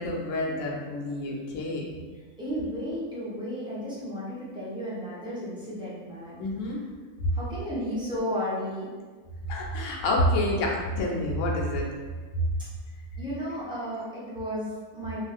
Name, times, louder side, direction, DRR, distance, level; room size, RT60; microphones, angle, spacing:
voice 1, 0.0-1.9 6.4-6.8 9.5-11.9, left 1 dB, 70° left, -2 dB, 0.9 m, -28 dB
voice 2, 2.4-6.4 7.3-8.9 13.2-15.2, equal, 5° right, -10 dB, 0.4 m, -33 dB
2.5 x 2.3 x 3.4 m, 1.4 s
omnidirectional pair, 1.5 m